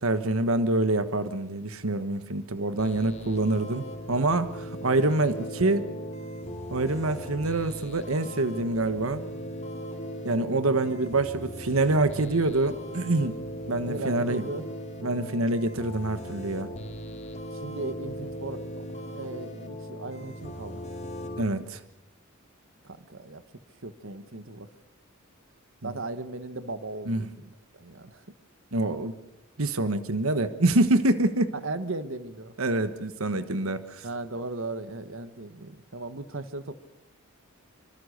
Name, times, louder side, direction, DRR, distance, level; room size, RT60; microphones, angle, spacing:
voice 1, 0.0-5.9 6.7-9.2 10.2-13.4 13.7-14.4 15.0-16.7 21.4-21.8 25.8-25.9 27.1-27.2 28.7-29.1 29.6-31.5 32.6-34.1, right 2 dB, 85° right, 12 dB, 1.3 m, -26 dB
sound 1, 2.8-21.4, equal, 35° left, 4.0 m, -38 dB
voice 2, 13.9-14.6 17.5-18.6 19.1-20.8 22.8-23.4 23.8-24.7 25.8-28.3 31.6-32.5 34.0-36.7, right 2 dB, 65° right, 12 dB, 1.5 m, -37 dB
26.0 x 25.0 x 6.6 m, 0.80 s
head